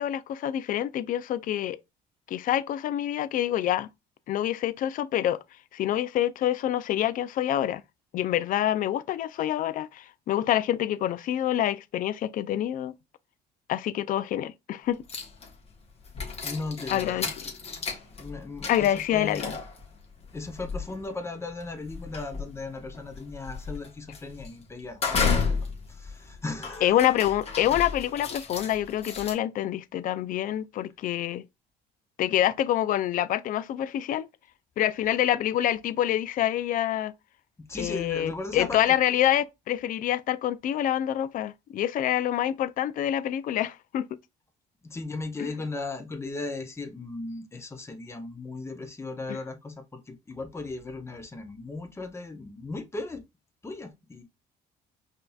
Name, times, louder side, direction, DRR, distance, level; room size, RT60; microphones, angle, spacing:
voice 1, 0.0-1.8 2.3-3.9 4.3-5.4 5.7-7.8 8.1-12.9 13.7-15.0 16.9-17.3 18.7-19.6 26.8-31.4 32.2-34.3 34.8-37.1 37.8-44.1 45.4-45.5 49.3-49.4, left 12 dB, 55° left, 0.4 m, -26 dB
sound 1, 15.1-15.7 16.0-29.3, left 5 dB, 35° left, 1.2 m, -33 dB
voice 2, 16.4-17.3 18.2-19.6 20.3-25.6 25.9-26.9 37.7-39.0 44.8-49.7 50.1-53.2 53.6-54.2, left 3 dB, 15° left, 0.8 m, -37 dB
5.1 x 2.7 x 2.3 m
cardioid pair, 110°, 17 cm